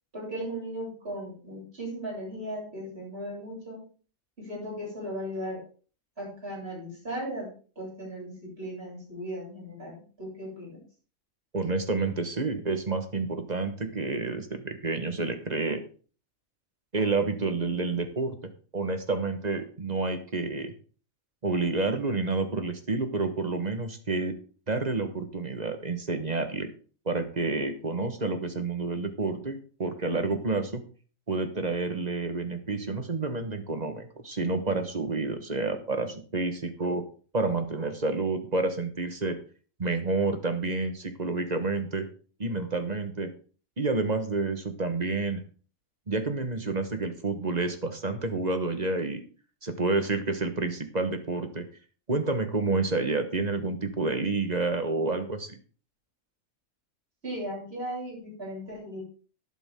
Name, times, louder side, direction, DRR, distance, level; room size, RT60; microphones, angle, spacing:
voice 1, 0.1-3.8 4.4-5.6 6.2-7.5 7.7-10.8 57.2-59.0, equal, 50° right, -5 dB, 8.3 m, -37 dB
voice 2, 11.5-15.8 16.9-18.4 18.7-20.7 21.4-24.3 24.7-26.7 27.0-30.8 31.3-37.0 37.3-39.4 39.8-42.1 42.4-43.3 43.8-45.4 46.1-49.2 49.6-51.7 52.1-55.6, right 3 dB, 30° right, 7 dB, 1.6 m, -29 dB
12.0 x 11.5 x 3.8 m, 0.39 s
omnidirectional pair, 1.4 m